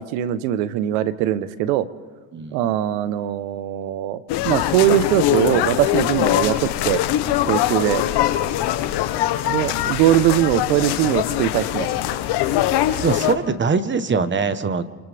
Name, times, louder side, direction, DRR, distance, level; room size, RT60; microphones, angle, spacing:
voice 1, 0.0-1.9 2.5-7.0 7.5-8.0 9.5-11.9, right 12 dB, 80° right, 14 dB, 1.2 m, -21 dB
voice 2, 2.3-2.7 13.0-14.9, right 5 dB, 25° right, 12 dB, 1.3 m, -22 dB
sound 1, 4.3-13.3, left 13 dB, 65° left, 1.5 m, -22 dB
28.5 x 28.0 x 3.6 m, 1.5 s
supercardioid pair, 110°, 43 cm